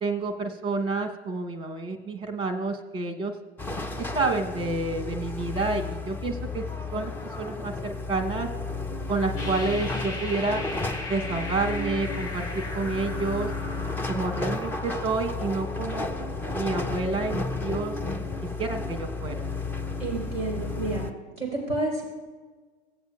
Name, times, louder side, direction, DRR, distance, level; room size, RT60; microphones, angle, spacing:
voice 1, 0.0-3.4 4.0-6.7 6.9-7.1 7.4-8.5 9.1-10.6 11.1-13.5 14.1-16.1 16.5-18.0 18.4-19.5, right 3 dB, 15° right, 6 dB, 1.0 m, -29 dB
sound 1, 3.6-21.1, left 3 dB, 5° left, 0.4 m, -33 dB
sound 2, 9.4-16.9, left 2 dB, 35° left, 2.5 m, -39 dB
voice 2, 20.0-21.0 21.4-22.0, right 2 dB, 85° left, -4 dB, 3.4 m, -30 dB
16.5 x 8.0 x 2.4 m, 1.3 s
figure-of-eight pair, 90°, 34 cm